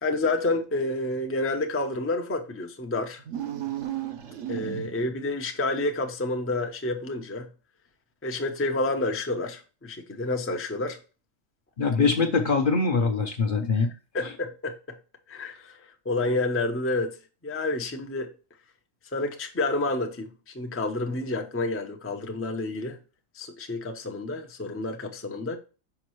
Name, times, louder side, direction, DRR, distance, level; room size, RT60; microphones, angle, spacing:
voice 1, 0.0-3.2 4.5-7.5 8.2-11.0 13.8-13.9 14.1-14.8 15.3-17.2 17.4-18.3 19.1-23.0 23.3-25.6, left 2 dB, 15° left, 0.5 m, -29 dB
sound 1, 3.2-5.2, right 10 dB, 70° right, 1.0 m, -34 dB
voice 2, 11.8-13.9, left 4 dB, 50° left, 0.8 m, -23 dB
5.9 x 5.3 x 3.1 m
omnidirectional pair, 1.4 m